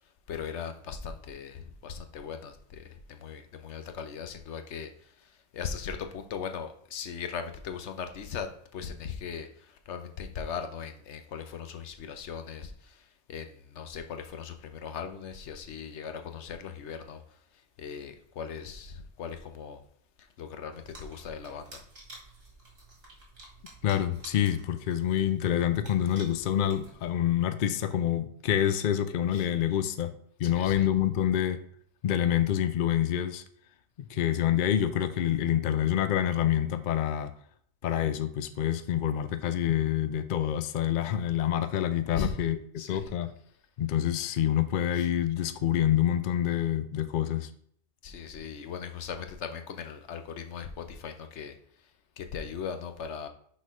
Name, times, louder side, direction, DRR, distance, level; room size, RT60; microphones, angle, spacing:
voice 1, 0.0-19.8 20.2-21.8 29.3-29.5 30.4-30.9 42.1-42.4 42.8-43.1 44.9-45.1 48.0-51.9 52.2-53.3, left 6 dB, 80° left, 1.1 m, -39 dB
sound 1, 20.7-27.3, right 2 dB, 60° right, 2.4 m, -51 dB
voice 2, 23.8-30.1 30.4-31.6 32.0-33.4 34.0-37.3 37.8-42.6 42.9-43.3 43.8-47.5, left 10 dB, 55° left, 0.6 m, -27 dB
6.1 x 4.2 x 5.3 m
omnidirectional pair, 1.2 m